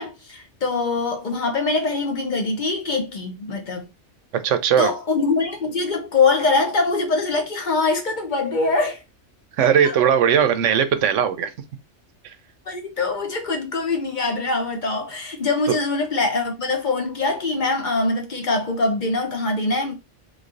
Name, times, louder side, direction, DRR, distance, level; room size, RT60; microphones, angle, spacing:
voice 1, 0.0-3.9 4.8-9.0 9.6-10.0 12.7-19.9, left 3 dB, 45° left, 0.9 m, -23 dB
voice 2, 4.4-4.9 9.6-11.5 15.7-15.8, right 8 dB, 85° right, 1.0 m, -18 dB
3.8 x 3.1 x 2.5 m
omnidirectional pair, 1.2 m